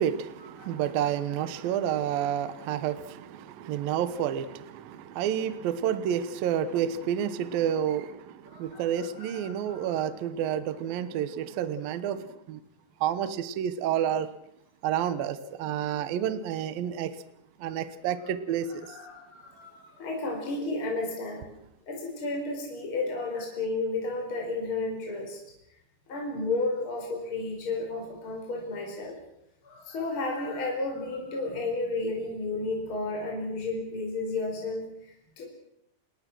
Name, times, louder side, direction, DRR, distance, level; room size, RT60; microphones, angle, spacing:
voice 1, 0.0-12.6 13.0-14.3 14.8-17.2 17.6-19.0, right 9 dB, 70° right, 12 dB, 2.4 m, -30 dB
voice 2, 8.5-10.1 18.8-21.5 21.9-25.4 26.1-29.2 29.6-35.4, left 3 dB, 30° left, 1 dB, 5.3 m, -33 dB
28.5 x 21.0 x 6.2 m, 0.78 s
omnidirectional pair, 5.4 m